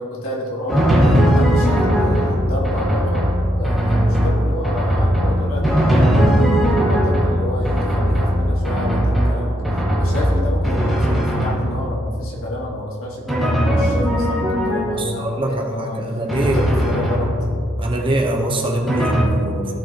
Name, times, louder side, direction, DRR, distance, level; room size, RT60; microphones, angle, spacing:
voice 1, 0.0-9.6 10.0-16.0 16.4-17.3, left 1 dB, 75° left, -4 dB, 2.1 m, -29 dB
Drum, 0.7-12.1 13.3-15.2 16.3-17.8 18.9-19.2, equal, ahead, 1.8 m, -18 dB
voice 2, 15.0-16.6 17.8-19.8, right 1 dB, 25° right, 1 dB, 1.0 m, -23 dB
16.0 x 5.6 x 2.9 m, 2.5 s
head